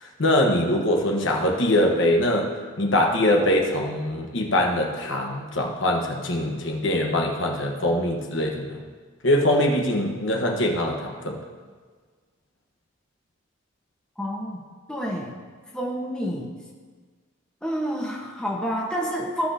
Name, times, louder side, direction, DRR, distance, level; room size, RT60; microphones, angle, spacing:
voice 1, 0.0-2.5 2.8-8.8 9.2-11.4, left 1 dB, 65° left, 1 dB, 1.2 m, -23 dB
voice 2, 14.2-14.6 14.9-15.3 15.7-16.5 17.6-19.5, equal, 5° left, -3 dB, 1.1 m, -28 dB
16.5 x 5.8 x 2.8 m, 1.5 s
head